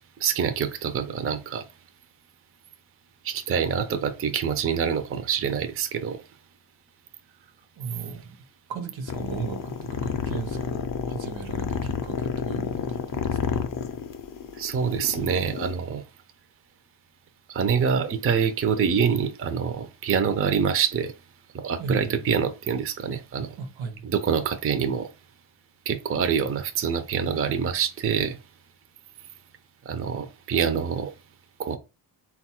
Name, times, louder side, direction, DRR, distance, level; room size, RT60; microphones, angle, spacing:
voice 1, 0.2-1.7 3.2-6.2 14.6-16.0 17.5-21.1 21.5-23.6 24.0-25.1 25.9-28.4 29.9-31.1 31.6-31.8, right 7 dB, 30° right, 0.4 m, -26 dB
voice 2, 7.4-8.4 8.7-13.6 21.8-22.2 23.6-24.0, right 5 dB, 80° right, 0.8 m, -36 dB
sound 1, 9.1-15.7, left 7 dB, 45° left, 0.5 m, -30 dB
3.9 x 2.3 x 4.2 m
wide cardioid pair, 145°, 46 cm